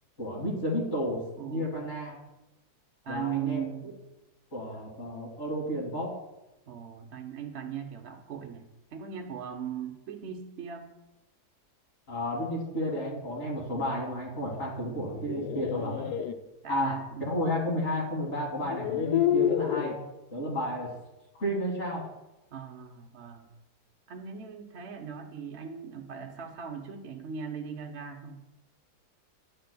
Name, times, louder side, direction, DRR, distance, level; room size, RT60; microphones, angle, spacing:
voice 1, 0.2-1.2 1.5-2.2 3.1-3.6 4.5-6.1 12.1-16.0 16.7-20.0 20.3-20.9 21.4-22.0, equal, 45° left, -3 dB, 2.0 m, -32 dB
voice 2, 1.4-1.7 3.0-4.0 6.7-8.7 8.9-10.9 16.0-16.2 16.6-17.3 22.5-23.5 24.1-28.4, right 8 dB, 55° right, 3 dB, 0.8 m, -39 dB
sound 1, 15.0-16.3 17.8-17.9 18.6-20.0, left 10 dB, 80° left, 1.1 m, -28 dB
11.0 x 8.0 x 2.2 m, 0.98 s
omnidirectional pair, 1.7 m